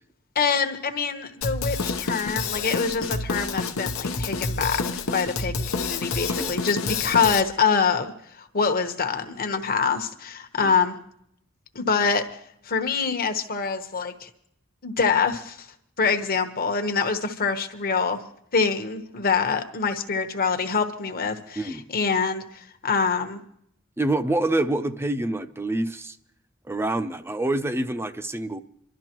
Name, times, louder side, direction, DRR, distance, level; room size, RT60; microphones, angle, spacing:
voice 1, 0.3-8.1 8.4-11.0 11.7-12.3 12.6-14.3 14.8-15.7 16.0-18.2 18.5-23.4, left 5 dB, 45° left, 1.1 m, -25 dB
Drum kit, 1.4-7.4, left 4 dB, 80° left, 0.9 m, -28 dB
voice 2, 24.0-26.2 26.7-28.6, right 2 dB, 10° right, 0.5 m, -26 dB
27.5 x 12.5 x 3.0 m
head